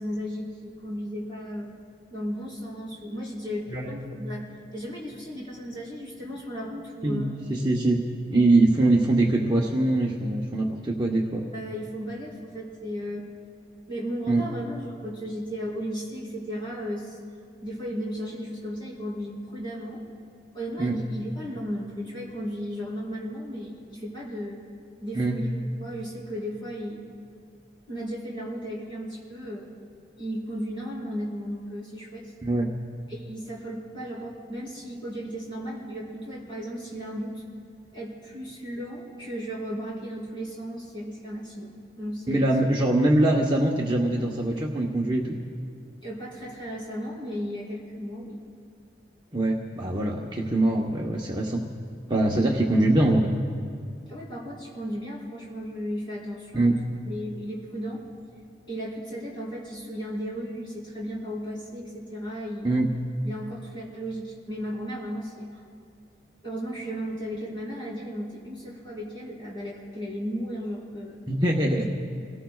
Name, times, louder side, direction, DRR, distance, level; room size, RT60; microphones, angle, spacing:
voice 1, 0.0-1.7 2.1-7.3 11.5-13.3 13.9-17.2 17.6-20.0 20.5-24.6 25.0-27.1 27.9-29.7 30.2-32.3 33.1-37.4 37.9-42.5 46.0-48.4 54.1-58.0 58.7-62.7 63.2-65.6 66.4-71.2 71.7-71.9, equal, 25° left, -5 dB, 4.4 m, -35 dB
voice 2, 7.0-8.0 8.3-11.4 14.3-14.4 20.8-21.0 25.1-25.3 32.4-32.7 42.3-45.4 49.3-51.6 52.1-53.3 56.5-56.8 62.6-62.9 71.3-71.9, right 2 dB, 25° right, -2 dB, 1.0 m, -23 dB
29.0 x 18.0 x 2.4 m, 2.3 s
head